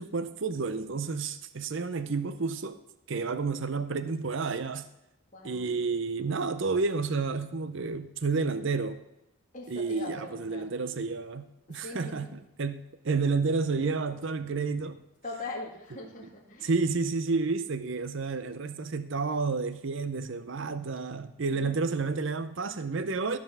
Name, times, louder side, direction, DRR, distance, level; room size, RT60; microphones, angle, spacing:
voice 1, 0.0-2.8 3.1-4.9 5.4-9.0 9.7-15.0 16.6-23.4, right 4 dB, 55° right, 12 dB, 0.6 m, -30 dB
voice 2, 5.3-5.7 9.5-10.7 11.7-12.4 15.2-16.7 21.5-21.7, left 2 dB, 35° left, -2 dB, 2.1 m, -41 dB
14.0 x 5.1 x 7.0 m, 0.88 s
head